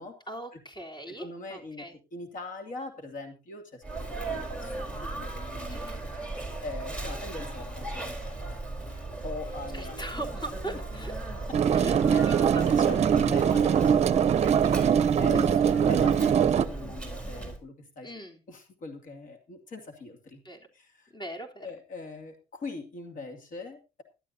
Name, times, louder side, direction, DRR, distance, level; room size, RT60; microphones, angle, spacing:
voice 1, 0.3-1.9 5.7-6.0 9.7-11.1 11.7-12.0 12.2-12.7 13.2-13.3 15.3-15.7 18.0-18.4 20.4-20.6 21.1-21.7, right 1 dB, 25° left, 2 dB, 3.6 m, -40 dB
voice 2, 1.1-4.0 4.3-8.6 8.9-10.0 11.7-15.6 15.9-18.1 18.5-20.4 20.7-21.1 21.6-24.0, left 3 dB, 50° left, 6 dB, 2.6 m, -42 dB
Sneeze, 3.8-17.6, right 2 dB, 5° left, 4.0 m, -37 dB
sound 1, 11.5-16.7, right 8 dB, 40° right, 0.7 m, -22 dB
18.0 x 12.0 x 2.8 m, 0.30 s
cardioid pair, 110°, 17 cm